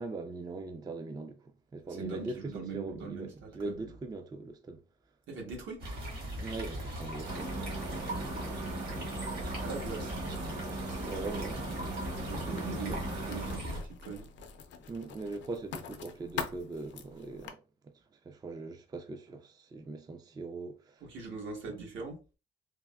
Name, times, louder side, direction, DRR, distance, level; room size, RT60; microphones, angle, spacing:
voice 1, 0.0-4.8 6.4-8.7 11.0-13.0 14.9-21.0 21.7-21.8, right 3 dB, 20° right, 0.3 m, -41 dB
voice 2, 1.9-3.8 5.3-5.8 9.6-10.2 12.3-14.3 21.0-22.2, right 4 dB, 70° right, 1.1 m, -41 dB
sound 1, 5.8-13.8, right 1 dB, 55° right, 1.4 m, -40 dB
sound 2, 7.2-13.6, right 2 dB, 35° right, 0.8 m, -39 dB
Writing, 9.6-17.5, left 7 dB, 65° left, 0.5 m, -46 dB
3.4 x 2.1 x 2.2 m
cardioid pair, 90°, 20 cm